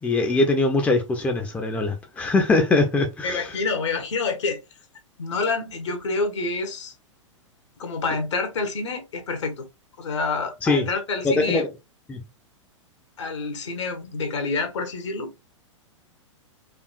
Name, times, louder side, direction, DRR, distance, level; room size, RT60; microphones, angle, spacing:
voice 1, 0.0-3.5 10.6-10.9 11.2-11.7 12.1-12.2, left 3 dB, 10° left, 0.6 m, -22 dB
voice 2, 3.2-4.6 5.2-6.9 7.8-9.5 10.0-11.6 13.2-15.4, left 4 dB, 65° left, 1.2 m, -27 dB
5.0 x 2.4 x 2.3 m
figure-of-eight pair, 105°, 16 cm